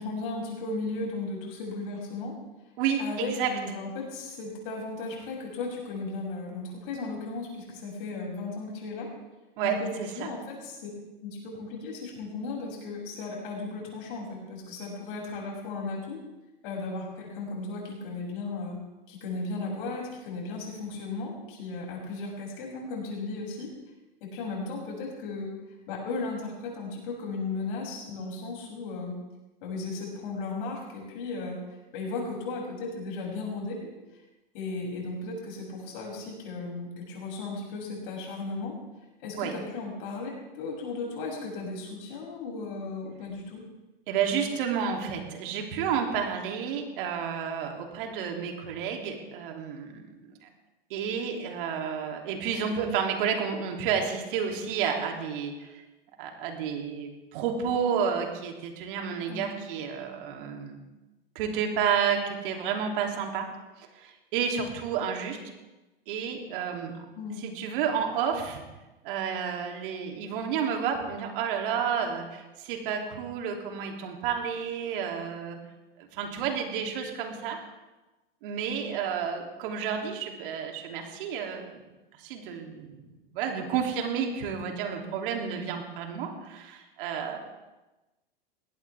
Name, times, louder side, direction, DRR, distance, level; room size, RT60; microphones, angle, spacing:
voice 1, 0.0-2.4 3.0-9.1 9.6-10.8 11.2-16.2 16.6-18.8 19.1-23.7 24.2-25.5 25.9-29.2 29.6-31.6 31.9-33.9 34.5-38.7 39.2-43.6 59.3-59.5 67.1-67.4, left 3 dB, 65° left, -2 dB, 7.6 m, -35 dB
voice 2, 2.8-3.5 9.6-10.3 39.4-39.5 44.1-50.5 50.9-55.8 56.2-60.8 61.3-63.5 63.8-65.4 66.1-66.9 67.4-68.6 69.0-75.6 76.0-77.6 78.4-81.8 82.2-83.0 83.3-87.4, right 7 dB, 60° right, 2 dB, 3.2 m, -31 dB
20.5 x 17.5 x 3.6 m, 1.1 s
hypercardioid pair, 105°, 29 cm